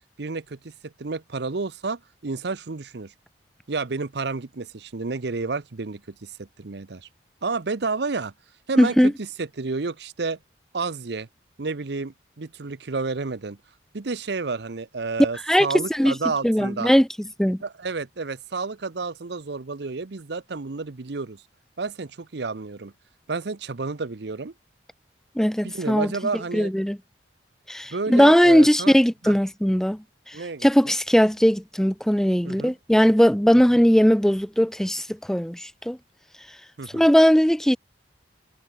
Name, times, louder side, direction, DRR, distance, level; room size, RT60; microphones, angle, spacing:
voice 1, 0.2-3.1 3.7-7.1 7.4-8.3 8.7-10.4 10.7-11.3 11.6-13.6 13.9-16.9 17.6-21.4 21.8-22.9 23.3-24.5 25.6-26.7 27.9-28.9 29.2-29.4 30.3-31.0 32.4-32.7 36.8-37.0, right 4 dB, 65° right, 0.8 m, -30 dB
voice 2, 8.8-9.1 15.5-16.1 16.4-17.1 17.4-17.6 25.4-26.1 26.5-27.0 27.7-30.0 30.6-36.0 36.9-37.8, equal, 5° left, 0.5 m, -19 dB
head